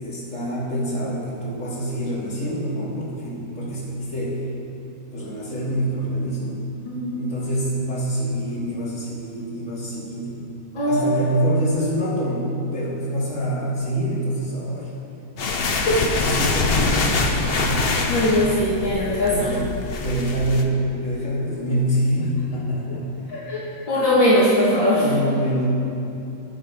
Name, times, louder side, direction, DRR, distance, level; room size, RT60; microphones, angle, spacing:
voice 1, 0.0-4.5 5.1-6.7 7.1-10.4 10.8-14.9 16.2-18.1 19.3-23.1 25.0-25.7, right 1 dB, 35° left, -8 dB, 3.5 m, -26 dB
voice 2, 6.9-7.3 10.7-11.1 15.7-16.1 18.1-19.5 23.3-25.0, left 1 dB, 65° left, -8 dB, 2.7 m, -20 dB
sound 1, 15.4-20.6, left 3 dB, 50° left, 0.7 m, -24 dB
18.0 x 10.5 x 3.9 m, 2.7 s
omnidirectional pair, 2.2 m